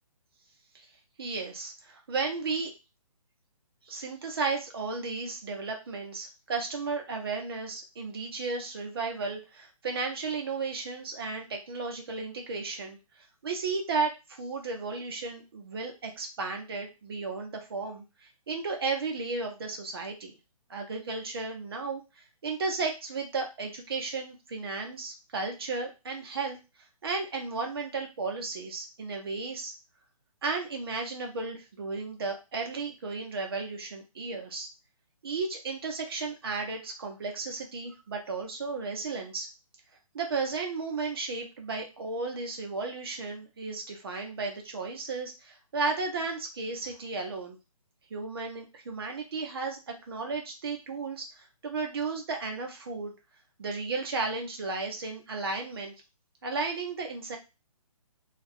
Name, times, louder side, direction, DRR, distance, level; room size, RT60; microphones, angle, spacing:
voice 1, 1.2-2.7 3.9-13.0 13.4-20.4 20.7-22.0 22.4-26.6 27.0-29.7 30.4-34.7 35.2-39.5 40.1-47.6 48.1-53.1 53.6-55.9 56.4-57.4, right 4 dB, 40° right, 2 dB, 0.7 m, -34 dB
2.4 x 2.2 x 3.4 m, 0.27 s
hypercardioid pair, 170°, 19 cm